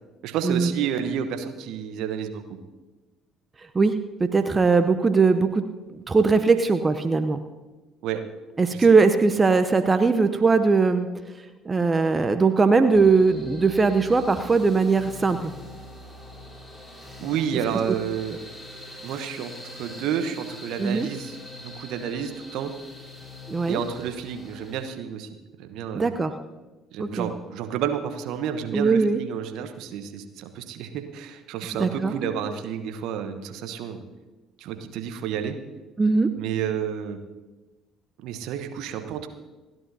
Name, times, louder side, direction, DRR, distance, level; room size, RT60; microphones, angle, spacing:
voice 1, 0.2-2.6 8.0-8.2 8.7-8.9 17.2-18.4 19.0-22.7 23.7-25.3 25.6-26.1 26.9-34.0 34.6-35.6 36.4-37.2 38.2-39.3, right 8 dB, 60° right, 8 dB, 1.1 m, -30 dB
voice 2, 4.2-5.6 6.1-7.4 8.6-11.1 11.7-15.5 20.8-21.1 23.5-23.8 25.9-26.3 27.0-27.3 28.7-29.2 31.8-32.1 36.0-36.3, right 4 dB, 25° right, 9 dB, 0.7 m, -20 dB
sound 1, 12.9-24.9, left 1 dB, ahead, 5.0 m, -43 dB
29.5 x 11.0 x 2.8 m, 1.2 s
figure-of-eight pair, 50°, 0 cm